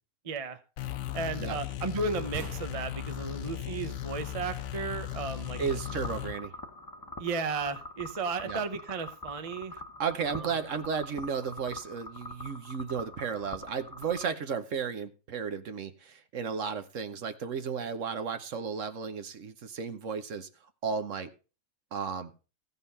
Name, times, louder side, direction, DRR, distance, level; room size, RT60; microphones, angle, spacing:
voice 1, 0.2-0.6 1.1-6.0 7.2-9.7 10.3-10.5, right 4 dB, 30° right, 10 dB, 0.7 m, -34 dB
sound 1, 0.8-6.3, left 12 dB, 60° left, 1.0 m, -37 dB
sound 2, 2.3-5.7, right 8 dB, 90° right, 1.7 m, -47 dB
sound 3, 5.4-14.3, left 1 dB, 20° left, 0.8 m, -44 dB
voice 2, 5.6-6.5 8.4-8.6 10.0-20.5 20.8-21.3 21.9-22.3, right 6 dB, 60° right, 10 dB, 1.2 m, -34 dB
15.0 x 5.5 x 5.5 m, 0.33 s
omnidirectional pair, 1.5 m